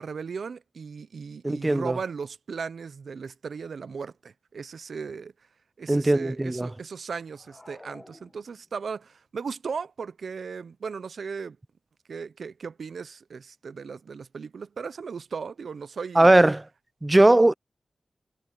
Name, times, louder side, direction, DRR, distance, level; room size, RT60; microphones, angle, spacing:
voice 1, 0.0-5.3 5.8-11.6 12.1-16.3, right 5 dB, 90° right, 0.5 m, -37 dB
voice 2, 1.4-2.0 5.9-6.7 16.2-16.7 17.0-17.5, right 1 dB, 20° right, 0.3 m, -19 dB
sound 1, 7.3-8.9, left 1 dB, 20° left, 1.0 m, -50 dB
wide cardioid pair, 110°, 0 cm